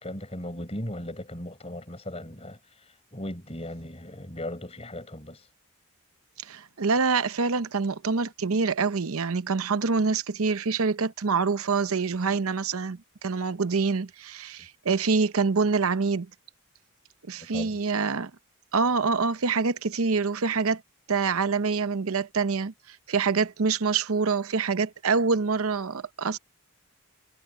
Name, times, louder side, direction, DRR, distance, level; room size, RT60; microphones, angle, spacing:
voice 1, 0.0-5.5 17.4-17.8, left 1 dB, 30° left, 4.6 m, -37 dB
voice 2, 6.4-16.3 17.3-18.3 18.7-20.8 21.1-22.7 23.1-26.4, right 4 dB, 75° right, 0.7 m, -26 dB
head